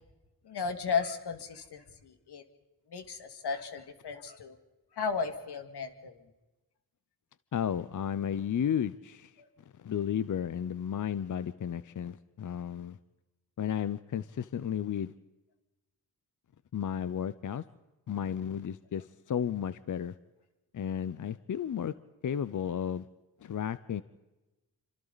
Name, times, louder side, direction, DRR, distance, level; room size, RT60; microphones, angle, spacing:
voice 1, 0.4-2.4 2.9-4.6 5.0-6.2 9.4-9.5, left 5 dB, 80° left, 7 dB, 2.2 m, -35 dB
voice 2, 7.5-9.4 9.7-13.0 13.6-15.1 16.7-17.6 18.1-20.1 20.7-21.9 22.2-23.1 23.4-24.0, left 8 dB, 50° left, 15 dB, 0.7 m, -33 dB
27.5 x 26.0 x 4.1 m, 1.1 s
cardioid pair, 80°, 39 cm